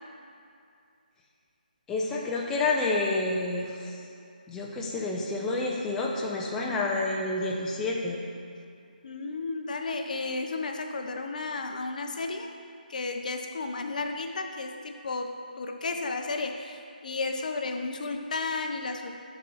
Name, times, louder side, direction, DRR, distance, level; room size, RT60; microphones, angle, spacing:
voice 1, 1.9-4.0 4.5-8.2, left 2 dB, 10° left, -2 dB, 0.5 m, -29 dB
voice 2, 9.0-12.5 12.9-15.3 15.6-19.1, left 3 dB, 55° left, 4 dB, 0.6 m, -33 dB
6.3 x 3.7 x 5.4 m, 2.5 s
figure-of-eight pair, 155°, 5 cm